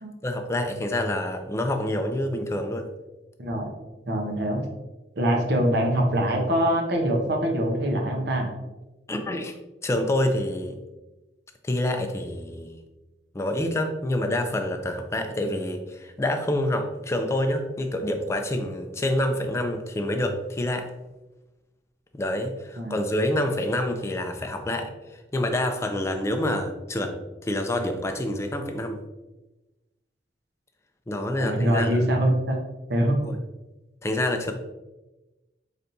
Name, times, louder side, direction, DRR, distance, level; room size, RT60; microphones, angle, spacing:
voice 1, 0.2-2.9 9.1-9.5 9.8-10.8 11.6-12.8 13.3-20.9 22.1-24.9 25.3-27.1 27.4-29.0 31.1-32.0 33.2-33.4 34.0-34.5, left 1 dB, 15° left, 5 dB, 0.4 m, -27 dB
voice 2, 3.4-3.7 4.1-4.6 5.2-8.5 22.8-23.0 31.4-32.6 32.9-33.2, right 1 dB, 65° right, 1 dB, 0.8 m, -23 dB
4.1 x 3.4 x 2.6 m, 1.1 s
head